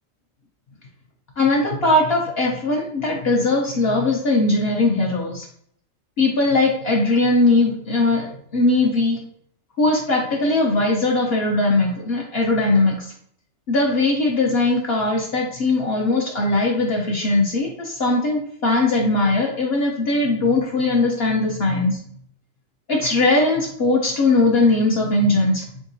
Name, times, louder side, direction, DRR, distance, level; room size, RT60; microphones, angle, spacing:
voice 1, 1.4-5.5 6.2-9.2 9.8-13.1 13.7-22.0 22.9-25.6, left 2 dB, 55° left, -1 dB, 0.8 m, -20 dB
3.9 x 3.6 x 2.6 m, 0.64 s
omnidirectional pair, 1.4 m